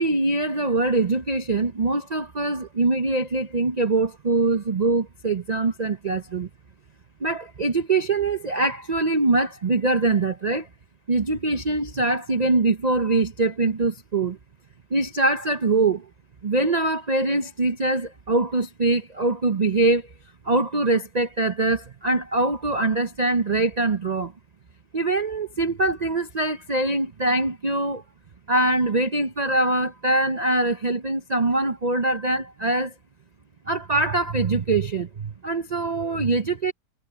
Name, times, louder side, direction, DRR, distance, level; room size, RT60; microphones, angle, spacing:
voice 1, 0.0-6.5 7.2-10.7 11.1-14.4 14.9-16.1 16.4-20.1 20.4-24.3 24.9-28.0 28.5-32.9 33.7-36.7, right 2 dB, 60° right, 0.4 m, -23 dB
omnidirectional pair, 2.0 m